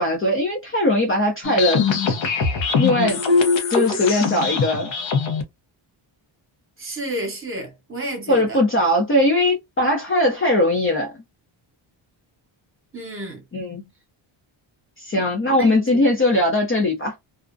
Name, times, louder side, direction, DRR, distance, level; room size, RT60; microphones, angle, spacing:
voice 1, 0.0-1.8 2.8-3.2 3.7-4.9 8.3-11.1 13.5-13.8 15.0-17.1, left 1 dB, 25° left, 0.5 m, -20 dB
sound 1, 1.4-5.4, left 5 dB, 65° left, 0.8 m, -22 dB
voice 2, 6.8-8.6 12.9-13.4 15.1-16.0, right 1 dB, 25° right, 1.0 m, -32 dB
2.5 x 2.1 x 2.5 m
wide cardioid pair, 130°, 49 cm